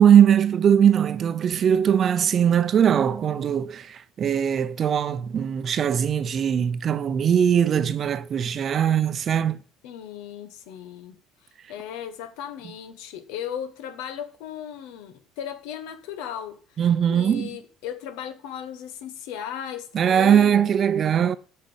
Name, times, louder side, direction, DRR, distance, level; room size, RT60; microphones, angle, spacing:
voice 1, 0.0-9.6 16.8-17.5 19.9-21.4, right 8 dB, 40° right, 0.7 m, -20 dB
voice 2, 9.8-11.1 11.7-16.6 17.1-20.7, left 9 dB, 90° left, 1.4 m, -36 dB
7.5 x 6.7 x 7.2 m
cardioid pair, 125°, 0 cm